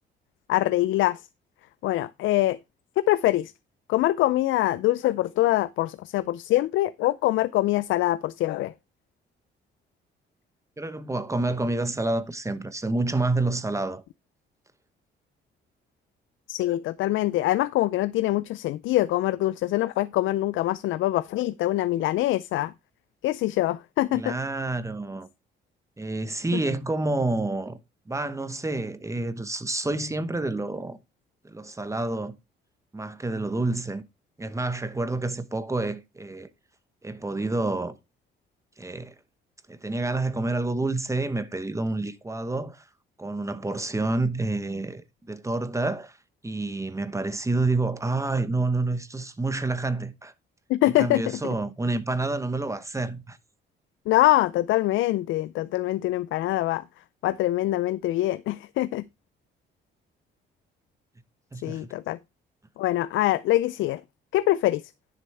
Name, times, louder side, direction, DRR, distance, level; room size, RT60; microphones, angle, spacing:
voice 1, 0.5-1.2 1.8-2.6 3.0-3.5 3.9-8.7 16.5-22.7 23.2-24.4 26.5-26.6 50.7-51.4 54.1-56.8 57.2-59.1 61.6-62.2 62.8-64.0 64.3-64.8, left 15 dB, 80° left, 0.4 m, -24 dB
voice 2, 10.8-14.0 24.1-25.3 26.0-27.8 28.1-31.0 31.4-32.3 32.9-34.0 34.4-36.5 37.0-37.9 38.8-39.1 39.7-42.8 43.2-46.2 46.4-50.3 51.0-53.4 61.5-61.9, right 2 dB, 15° right, 1.0 m, -28 dB
10.5 x 6.6 x 3.3 m
cardioid pair, 90°, 20 cm